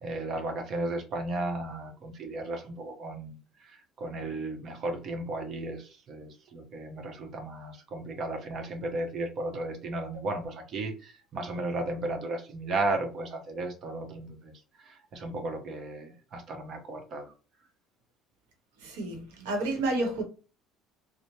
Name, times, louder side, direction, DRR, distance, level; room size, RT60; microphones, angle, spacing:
voice 1, 0.0-14.5 14.8-17.3, right 2 dB, 50° right, 0.8 m, -35 dB
voice 2, 18.8-20.2, right 2 dB, 85° right, 1.0 m, -30 dB
3.1 x 2.1 x 2.6 m
supercardioid pair, 85°, 0 cm